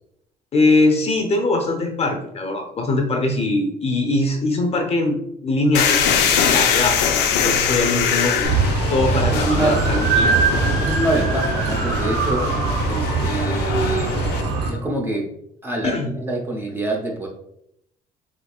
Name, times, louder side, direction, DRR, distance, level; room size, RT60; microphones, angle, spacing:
voice 1, 0.5-8.6 8.9-10.4 15.8-16.1, left 2 dB, 35° left, 3 dB, 0.7 m, -21 dB
sound 1, 5.7-14.4, left 7 dB, 85° left, 0.5 m, -23 dB
sound 2, 8.4-14.7, right 4 dB, 80° right, 0.8 m, -21 dB
voice 2, 9.3-9.8 10.8-12.5 12.9-14.1 14.7-15.3 15.6-17.3, right 1 dB, 15° right, -1 dB, 0.7 m, -25 dB
4.2 x 2.8 x 2.4 m, 0.77 s
cardioid pair, 110°, 17 cm